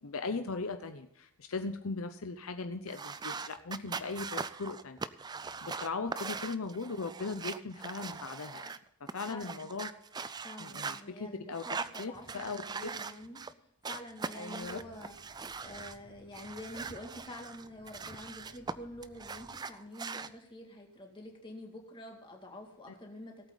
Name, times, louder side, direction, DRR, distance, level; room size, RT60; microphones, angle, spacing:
voice 1, 0.0-5.0 5.6-8.8 9.1-9.9 10.6-11.6 12.0-12.6 14.3-14.8, left 4 dB, 70° left, 8 dB, 0.7 m, -38 dB
sound 1, 2.9-8.8 9.1-11.0 11.5-13.5 13.8-16.0 16.3-18.7 19.0-20.3, right 5 dB, 20° right, 0.3 m, -41 dB
voice 2, 9.3-9.7 10.4-13.4 13.9-23.5, left 1 dB, 20° left, 1 dB, 2.2 m, -47 dB
sound 2, 14.6-19.6, right 1 dB, 50° right, 4.0 m, -59 dB
18.0 x 8.3 x 4.0 m, 0.79 s
head